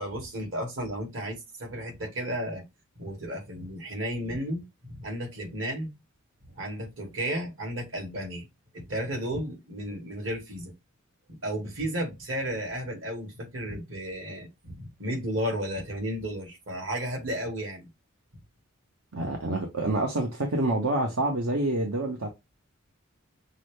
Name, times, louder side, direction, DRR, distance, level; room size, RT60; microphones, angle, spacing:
voice 1, 0.0-2.7 3.0-6.0 6.6-8.5 8.7-10.7 11.3-17.8, equal, 70° right, 2.1 m, -33 dB
voice 2, 19.1-22.3, right 2 dB, 85° right, 1.0 m, -27 dB
6.0 x 2.1 x 3.2 m
head